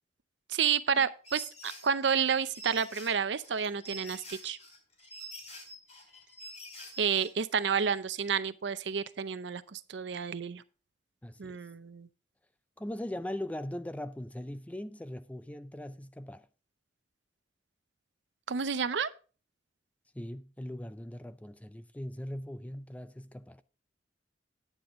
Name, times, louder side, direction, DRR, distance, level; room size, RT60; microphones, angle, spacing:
voice 1, 0.5-4.6 7.0-10.6 11.4-12.1 18.5-19.1, right 6 dB, 75° right, 0.6 m, -30 dB
sound 1, 1.2-7.3, right 1 dB, 40° left, 3.1 m, -46 dB
voice 2, 11.2-11.6 12.8-16.5 20.1-23.6, left 1 dB, 10° left, 0.4 m, -40 dB
9.5 x 8.9 x 3.7 m
head